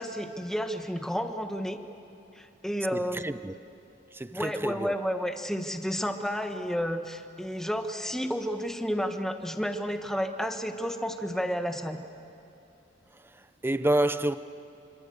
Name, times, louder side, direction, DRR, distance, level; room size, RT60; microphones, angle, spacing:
voice 1, 0.0-1.8 2.3-3.3 4.3-12.0, equal, 5° left, 1.4 m, -31 dB
voice 2, 2.9-3.5 4.1-5.0 13.3-14.4, right 1 dB, 10° right, 0.6 m, -28 dB
27.0 x 26.0 x 8.0 m
head